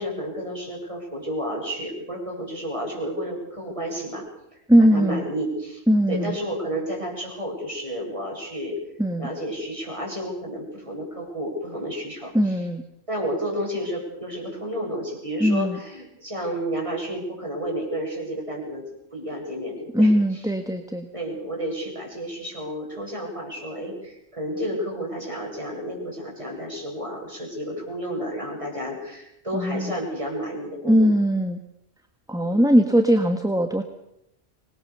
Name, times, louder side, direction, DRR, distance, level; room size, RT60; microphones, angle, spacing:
voice 1, 0.0-4.3 4.8-5.8 6.1-8.8 9.2-12.3 13.1-20.1 21.1-31.1 32.4-32.7, equal, 30° right, -1 dB, 7.9 m, -31 dB
voice 2, 4.7-5.2 5.9-6.3 9.0-9.3 12.3-12.8 15.4-15.8 19.9-21.1 29.5-29.9 30.8-31.6 32.3-33.8, equal, 5° right, 7 dB, 1.5 m, -20 dB
25.5 x 21.0 x 6.9 m, 0.81 s
omnidirectional pair, 1.1 m